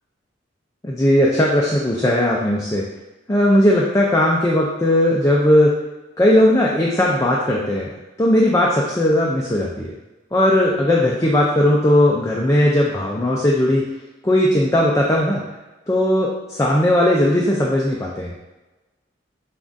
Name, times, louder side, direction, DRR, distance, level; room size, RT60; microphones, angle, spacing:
voice 1, 0.8-2.8 3.3-5.7 6.2-7.9 8.2-9.9 10.3-13.8 14.2-15.4 15.9-18.3, left 1 dB, 15° left, -3 dB, 0.4 m, -17 dB
7.0 x 2.4 x 2.5 m, 1.1 s
head